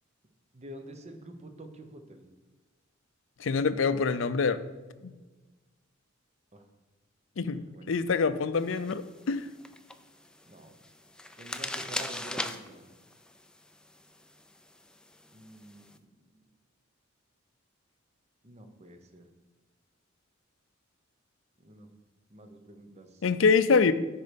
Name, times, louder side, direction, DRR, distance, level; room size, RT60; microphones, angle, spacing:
voice 1, 0.5-2.2 6.5-6.6 7.7-7.9 10.5-10.7 11.4-12.8 15.3-16.1 16.3-16.4 18.4-19.3 21.6-21.9 22.3-23.2, right 1 dB, 35° right, 6 dB, 0.9 m, -48 dB
voice 2, 3.4-4.6 5.0-5.1 7.4-7.6 7.9-9.4 23.2-23.9, left 5 dB, 65° left, 13 dB, 0.5 m, -25 dB
sound 1, 8.5-16.0, left 1 dB, 5° left, 0.4 m, -41 dB
10.5 x 4.5 x 5.1 m, 1.2 s
head